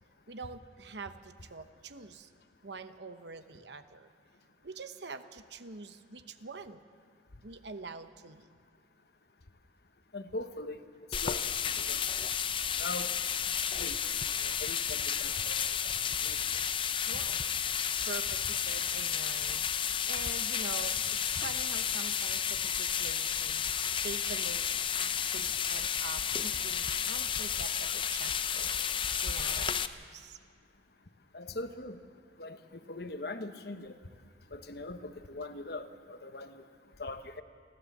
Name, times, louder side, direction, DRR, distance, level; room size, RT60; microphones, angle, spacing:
voice 1, 0.3-2.3 2.6-4.1 4.6-6.8 7.4-8.5 17.1-17.4 18.1-23.6 24.0-24.7 25.0-28.8 29.2-30.4, right 4 dB, 70° right, 10 dB, 1.0 m, -45 dB
voice 2, 10.1-10.8 11.1-11.5 11.9-12.1 12.6-13.1 13.8-14.0 14.4-16.4 31.3-32.0 32.4-33.9 34.5-36.6 37.0-37.4, left 2 dB, 60° left, 9 dB, 1.0 m, -41 dB
sound 1, 11.1-29.9, left 8 dB, 30° left, 0.5 m, -32 dB
29.0 x 12.5 x 7.3 m, 2.1 s
head